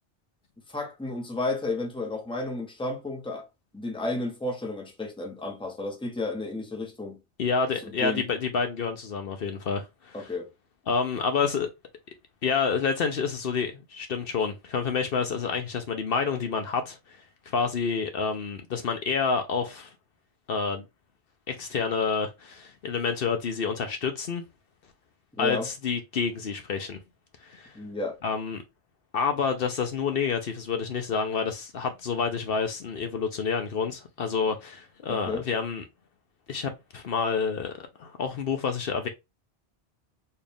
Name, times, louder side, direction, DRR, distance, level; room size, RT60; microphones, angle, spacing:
voice 1, 0.7-3.5 3.7-7.2 7.8-8.3 10.1-10.5 25.3-25.7 27.7-28.2 35.1-35.5, left 2 dB, 5° left, 0.9 m, -32 dB
voice 2, 7.4-10.3 10.9-11.7 12.4-17.0 17.5-19.9 20.5-20.8 21.5-24.4 25.4-27.0 27.4-27.7 28.2-28.6 29.1-35.8 36.5-39.1, left 5 dB, 65° left, 0.9 m, -28 dB
4.4 x 2.4 x 3.4 m
omnidirectional pair, 1.1 m